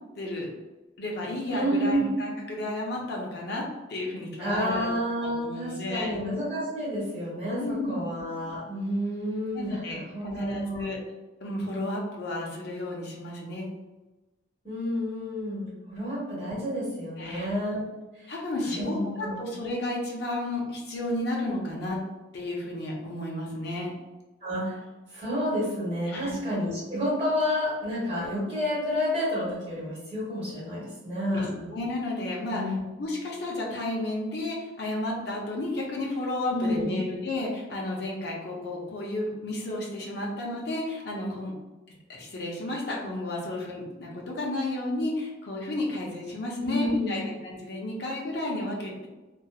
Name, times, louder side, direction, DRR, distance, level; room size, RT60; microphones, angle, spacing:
voice 1, 0.2-0.5 1.0-4.9 5.1-6.1 7.5-8.1 9.5-11.0 11.4-13.7 17.2-17.5 18.3-22.0 22.3-23.9 26.1-26.4 31.3-32.6 33.0-41.5 42.1-49.1, left 1 dB, 55° left, -3 dB, 0.5 m, -32 dB
voice 2, 1.5-2.1 4.4-10.9 14.6-17.9 18.2-18.3 18.7-19.4 24.4-24.8 25.1-31.5 32.5-32.8 36.5-37.0 46.6-47.2, equal, 30° right, -8 dB, 1.3 m, -30 dB
2.8 x 2.3 x 2.3 m, 1.1 s
head